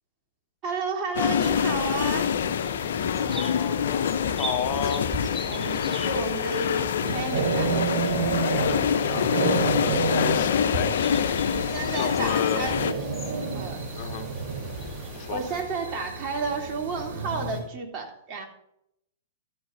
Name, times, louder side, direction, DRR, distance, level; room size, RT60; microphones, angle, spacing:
voice 1, 0.6-2.3 5.4-7.7 11.5-13.1 13.5-14.1 15.3-18.5, right 4 dB, 35° right, 1 dB, 3.1 m, -32 dB
sound 1, 1.1-12.9, left 8 dB, 65° left, 0.7 m, -26 dB
sound 2, 1.4-15.6, left 1 dB, 5° right, 2.4 m, -39 dB
voice 2, 3.0-5.1 8.4-9.3 9.6-10.9 12.0-12.6 14.0-14.3 15.1-15.4, left 7 dB, 45° left, 7 dB, 1.2 m, -32 dB
sound 3, 7.0-17.6, right 4 dB, 60° right, 5.2 m, -30 dB
14.0 x 12.5 x 2.7 m, 0.76 s
figure-of-eight pair, 110°, 0 cm